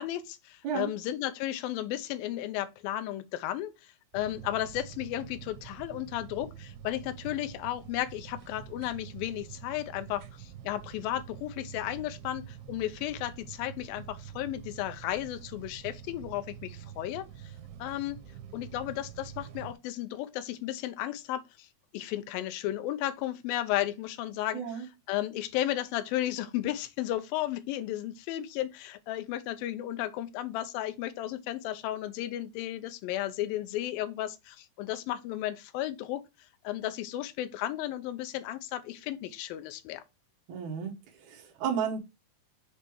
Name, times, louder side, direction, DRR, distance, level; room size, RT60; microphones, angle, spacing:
voice 1, 0.0-3.7 4.1-17.5 17.8-18.2 18.5-21.7 21.9-24.6 25.1-36.2 36.6-40.0, left 13 dB, 80° left, 2.2 m, -34 dB
sound 1, 4.1-19.8, right 9 dB, 80° right, 2.7 m, -46 dB
voice 2, 24.5-24.9 40.5-42.0, right 7 dB, 60° right, 2.2 m, -33 dB
6.7 x 3.4 x 4.6 m
omnidirectional pair, 4.7 m